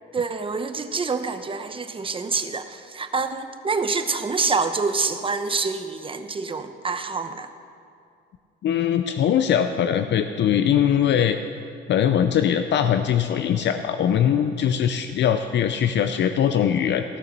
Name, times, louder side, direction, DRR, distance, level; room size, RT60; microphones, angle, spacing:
voice 1, 0.1-7.5, right 4 dB, 25° right, 9 dB, 0.8 m, -26 dB
voice 2, 8.6-11.4 11.9-17.0, left 9 dB, 65° left, 8 dB, 0.5 m, -21 dB
14.0 x 6.7 x 6.7 m, 2.4 s
cardioid pair, 90°, 20 cm